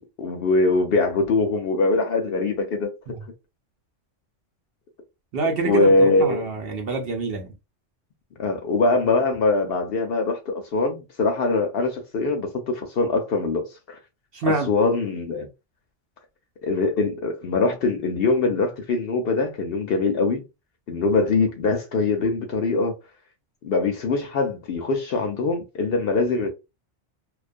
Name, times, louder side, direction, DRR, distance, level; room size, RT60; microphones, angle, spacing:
voice 1, 0.2-2.9 5.6-6.5 8.4-14.0 14.4-15.5 16.6-20.4 20.9-23.0 23.6-26.5, left 3 dB, 60° left, 0.7 m, -22 dB
voice 2, 5.3-7.5 14.3-14.7, right 3 dB, 60° right, 0.7 m, -27 dB
2.3 x 2.2 x 2.5 m
omnidirectional pair, 1.3 m